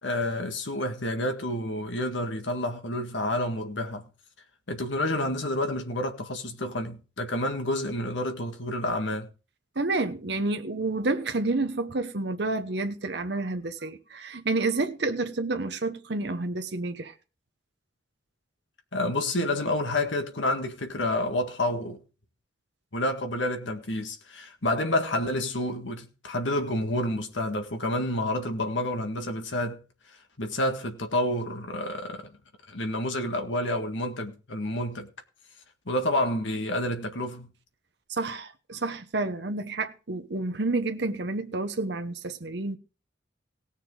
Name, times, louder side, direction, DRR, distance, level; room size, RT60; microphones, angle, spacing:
voice 1, 0.0-4.0 4.7-9.3 18.9-22.0 22.9-29.8 30.4-32.2 32.7-35.1 35.9-37.5, left 1 dB, 85° left, 1.8 m, -29 dB
voice 2, 9.8-17.1 38.1-42.8, right 3 dB, 65° right, 1.0 m, -29 dB
18.5 x 6.7 x 3.8 m
head